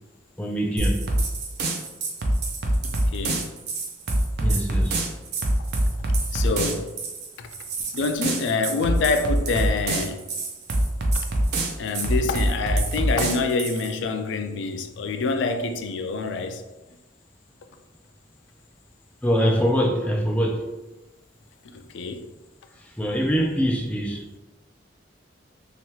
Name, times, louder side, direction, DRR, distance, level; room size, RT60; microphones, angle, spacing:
voice 1, 0.4-1.0 4.4-5.0 19.2-20.7 22.8-24.4, equal, 5° left, 0.4 m, -24 dB
sound 1, 0.8-13.9, right 1 dB, 60° right, 0.5 m, -25 dB
voice 2, 2.8-3.5 6.3-6.9 7.4-7.5 7.9-10.2 11.8-16.6 21.7-22.3, left 3 dB, 80° left, 0.3 m, -26 dB
2.9 x 2.3 x 2.9 m
head